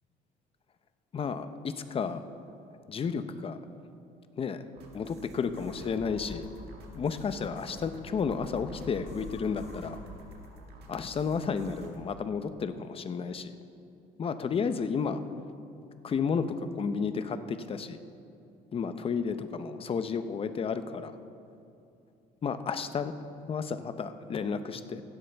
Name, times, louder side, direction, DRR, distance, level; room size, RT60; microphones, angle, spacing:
voice 1, 1.1-2.2 2.9-3.6 4.4-4.7 4.9-6.5 7.0-10.0 10.9-13.6 14.2-15.2 16.0-16.5 16.8-18.0 18.7-21.1 22.4-23.1 23.5-25.0, left 6 dB, 35° left, 10 dB, 0.6 m, -32 dB
sound 1, 4.8-12.0, right 2 dB, 75° right, 1.7 m, -51 dB
sound 2, 5.6-11.0, left 2 dB, 60° left, 1.6 m, -48 dB
16.0 x 12.0 x 3.4 m, 2.6 s
cardioid pair, 110°, 17 cm